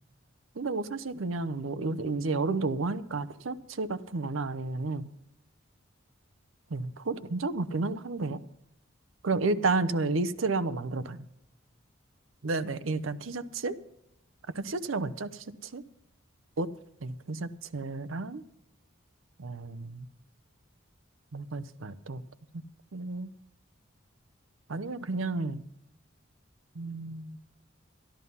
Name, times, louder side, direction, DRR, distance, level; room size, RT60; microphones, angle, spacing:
voice 1, 0.5-5.1 6.7-8.4 9.2-11.2 12.4-13.7 14.5-15.8 16.6-16.7 17.0-18.4 19.4-20.1 21.3-22.2 22.9-23.3 24.7-25.6 26.7-27.4, right 3 dB, 85° right, 0.7 m, -31 dB
12.5 x 11.5 x 5.5 m
head